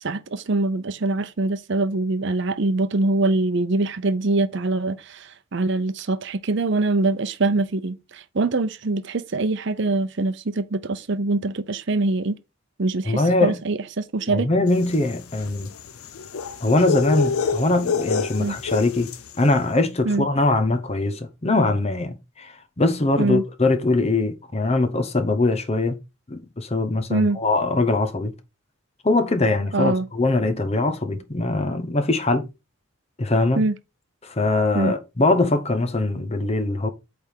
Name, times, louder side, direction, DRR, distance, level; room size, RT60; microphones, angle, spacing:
voice 1, 0.0-12.4 12.8-14.5 18.4-18.6 20.0-20.3 23.2-23.4 27.1-27.4 29.7-30.1 33.6-33.8 34.7-35.0, right 2 dB, 55° right, 0.7 m, -23 dB
voice 2, 13.1-13.6 14.3-15.7 16.6-19.1 19.4-26.0 26.3-28.3 29.0-32.4 33.2-33.6 34.2-36.9, left 2 dB, 30° left, 0.8 m, -22 dB
sound 1, 14.8-19.4, left 5 dB, 90° left, 0.6 m, -27 dB
8.6 x 3.5 x 4.4 m
head